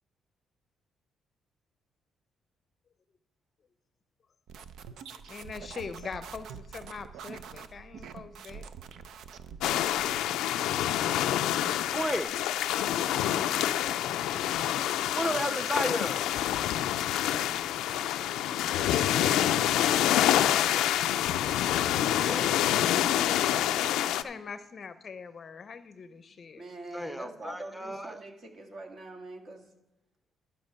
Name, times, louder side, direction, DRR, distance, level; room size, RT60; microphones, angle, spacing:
sound 1, 4.5-10.2, right 6 dB, 75° right, 0.5 m, -45 dB
voice 1, 5.3-8.7 15.1-15.4 24.2-26.6, left 5 dB, 45° left, 11 dB, 0.6 m, -42 dB
sound 2, 9.6-24.2, left 12 dB, 90° left, 0.4 m, -27 dB
voice 2, 11.9-12.3 15.1-16.3 22.2-22.9 26.9-28.1, equal, ahead, 9 dB, 0.7 m, -33 dB
voice 3, 17.4-19.2 19.9-21.6 22.8-23.9 26.3-29.7, right 2 dB, 55° right, 4 dB, 1.8 m, -47 dB
12.0 x 5.6 x 5.3 m, 0.98 s
cardioid pair, 90°, 0 cm